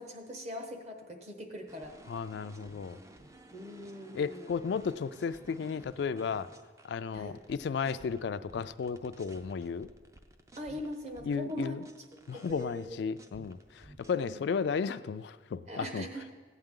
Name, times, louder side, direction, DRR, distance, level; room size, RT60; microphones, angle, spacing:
voice 1, 0.0-2.0 3.5-4.5 7.1-7.4 10.6-11.8 12.3-13.0 14.1-14.5 15.7-16.3, equal, 35° right, 3 dB, 1.0 m, -41 dB
sound 1, 1.7-8.2 8.5-14.1, right 1 dB, 15° right, 0.4 m, -55 dB
voice 2, 2.1-3.0 4.1-6.5 6.8-9.9 11.2-11.8 12.3-16.1, left 6 dB, 65° left, 12 dB, 0.3 m, -34 dB
15.5 x 9.0 x 3.7 m, 1.5 s
head